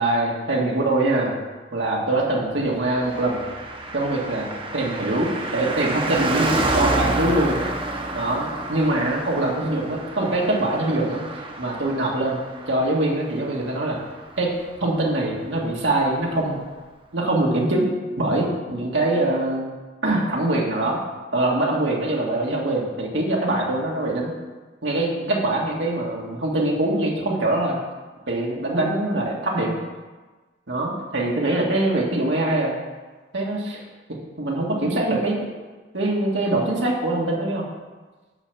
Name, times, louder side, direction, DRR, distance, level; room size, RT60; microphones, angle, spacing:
voice 1, 0.0-1.3 1.7-3.4 3.9-7.6 8.1-11.2 11.6-12.4 12.7-14.0 14.4-16.6 17.1-17.9 18.2-19.7 20.0-21.0 21.3-24.3 24.8-27.8 28.3-29.7 30.7-32.7 33.3-33.8 34.4-35.5 35.9-37.6, right 2 dB, 80° right, -2 dB, 1.7 m, -23 dB
Car passing by, 2.9-14.8 15.0-15.1, right 2 dB, 30° right, 0.8 m, -29 dB
7.0 x 5.9 x 6.7 m, 1.3 s
head